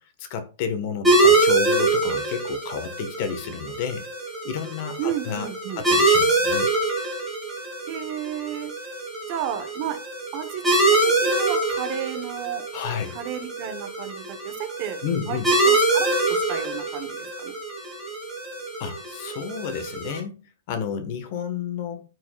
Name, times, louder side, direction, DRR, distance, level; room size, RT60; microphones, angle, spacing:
voice 1, 0.2-4.1 4.4-5.5 5.8-6.7 12.7-13.2 15.0-15.5 18.8-20.4 20.7-22.0, left 7 dB, 35° left, 1.2 m, -31 dB
sound 1, 1.0-20.2, right 2 dB, 5° right, 2.0 m, -24 dB
voice 2, 5.0-5.8 7.9-8.7 9.3-10.0 10.3-12.6 13.1-15.0 15.3-17.5, right 10 dB, 30° right, 1.0 m, -32 dB
14.0 x 4.8 x 2.3 m
supercardioid pair, 175°, 0 cm